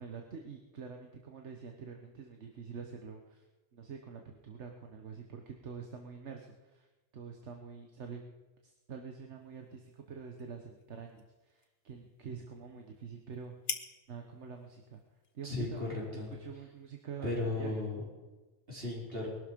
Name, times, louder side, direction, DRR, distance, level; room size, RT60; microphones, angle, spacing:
voice 1, 0.0-3.4 3.7-6.9 7.1-8.2 8.6-13.5 14.1-15.0 15.3-15.8 16.1-17.9, right 6 dB, 75° right, 3 dB, 1.5 m, -46 dB
sound 1, 9.3-17.1, left 5 dB, 80° left, 1.5 m, -49 dB
voice 2, 15.4-16.3 17.2-18.0 18.7-19.3, left 2 dB, 55° right, -3 dB, 5.0 m, -35 dB
21.5 x 12.0 x 5.3 m, 1.2 s
omnidirectional pair, 1.2 m